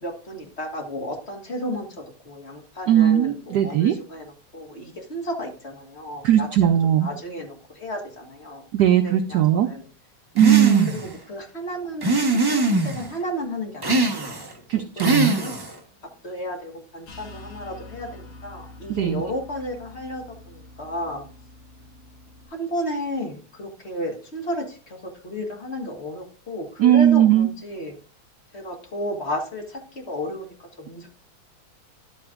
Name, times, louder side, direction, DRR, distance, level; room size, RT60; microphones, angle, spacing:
voice 1, 0.0-9.8 10.9-12.1 12.5-14.5 15.0-15.5 16.2-21.3 22.5-27.9 28.5-31.1, equal, 35° left, 2 dB, 1.6 m, -33 dB
voice 2, 2.9-4.0 6.2-7.1 8.7-9.7 10.3-10.9 14.7-15.4 18.9-19.2 26.8-27.5, right 11 dB, 75° right, 8 dB, 0.9 m, -18 dB
Electric Whisk Rev, 10.4-11.1 12.0-13.1 13.8-14.5 15.0-15.8, right 2 dB, 20° right, 0.6 m, -22 dB
sound 1, 17.1-22.5, left 2 dB, 70° left, 2.6 m, -45 dB
11.5 x 7.8 x 2.4 m, 0.38 s
omnidirectional pair, 2.3 m